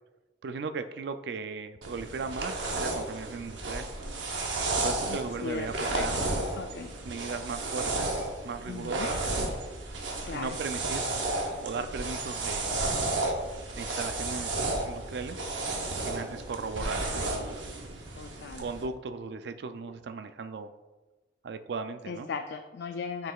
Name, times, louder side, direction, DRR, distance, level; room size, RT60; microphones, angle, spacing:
voice 1, 0.4-3.9 4.7-6.1 7.0-9.2 10.3-11.0 11.6-12.8 13.8-15.5 16.0-17.7 18.6-20.7 21.4-22.3, right 4 dB, 60° right, 10 dB, 0.3 m, -37 dB
sound 1, 1.8-18.8, right 2 dB, 80° right, 0.8 m, -33 dB
voice 2, 5.1-6.1 6.6-6.9 8.7-9.1 10.3-10.6 16.8-17.4 18.2-18.6 22.1-23.3, left 5 dB, 65° left, 5 dB, 0.3 m, -38 dB
9.3 x 4.7 x 2.3 m, 1.2 s
head